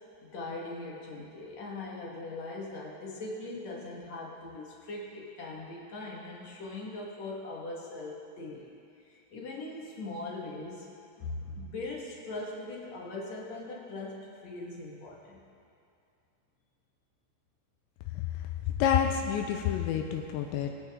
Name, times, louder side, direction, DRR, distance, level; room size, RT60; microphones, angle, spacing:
voice 1, 0.2-8.7 9.1-10.9 11.2-15.4, left 2 dB, 60° left, -3 dB, 1.9 m, -40 dB
voice 2, 18.8-20.7, left 8 dB, 80° left, 4 dB, 2.8 m, -28 dB
24.0 x 9.1 x 3.6 m, 2.5 s
omnidirectional pair, 5.6 m